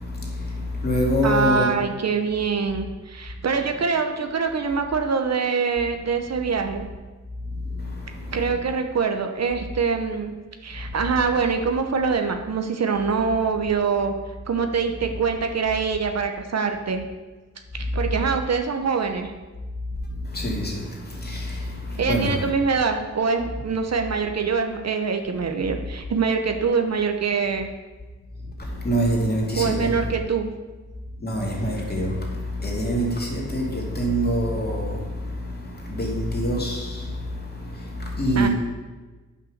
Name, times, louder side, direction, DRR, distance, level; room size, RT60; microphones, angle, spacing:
voice 1, 0.0-1.7 7.5-8.4 10.7-10.9 17.8-18.1 20.2-22.4 28.4-29.9 31.1-38.5, equal, 35° left, 2.4 m, -26 dB
voice 2, 1.2-6.9 8.3-10.3 10.6-14.1 14.5-17.0 17.7-19.3 22.0-27.7 29.5-30.5 38.3-38.5, right 5 dB, 65° right, 0.9 m, -24 dB
9.3 x 5.8 x 6.6 m
wide cardioid pair, 120°, 29 cm